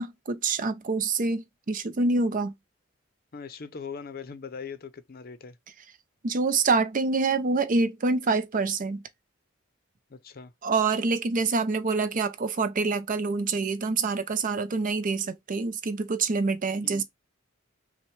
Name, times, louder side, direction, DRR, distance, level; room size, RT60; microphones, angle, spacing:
voice 1, 0.0-2.5 6.2-9.0 10.6-17.0, right 4 dB, 45° right, 0.5 m, -26 dB
voice 2, 3.3-5.6 10.1-10.5 16.8-17.0, left 5 dB, 50° left, 0.6 m, -40 dB
5.7 x 2.2 x 3.2 m
head